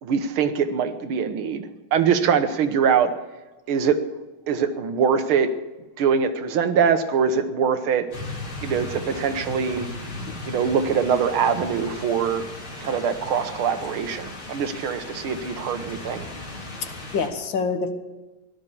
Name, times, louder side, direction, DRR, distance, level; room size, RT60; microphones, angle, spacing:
voice 1, 0.0-3.1 3.7-4.0 4.5-5.5 6.0-8.1 8.6-9.9 10.5-12.5 12.8-16.2, right 7 dB, 85° right, 9 dB, 2.0 m, -23 dB
sound 1, 8.1-17.3, left 2 dB, 85° left, 4.0 m, -36 dB
voice 2, 16.8-17.9, left 4 dB, 65° left, 8 dB, 2.0 m, -27 dB
16.5 x 12.0 x 7.2 m, 1.2 s
omnidirectional pair, 2.2 m